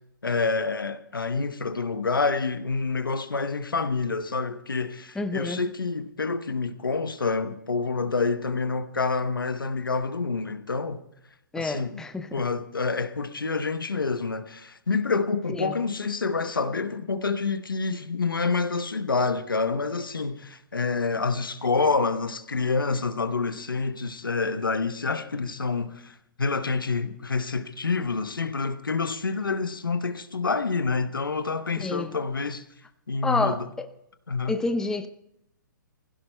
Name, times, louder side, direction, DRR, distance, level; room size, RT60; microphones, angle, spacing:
voice 1, 0.2-11.0 11.5-12.0 12.3-32.6 33.1-33.7 34.3-34.6, left 4 dB, 90° left, 1.0 m, -27 dB
voice 2, 5.2-5.6 11.5-12.4 15.5-15.8 31.8-32.1 33.2-33.9 34.5-35.1, left 3 dB, 5° left, 0.6 m, -29 dB
23.5 x 16.0 x 2.2 m
hypercardioid pair, 130°, 11 cm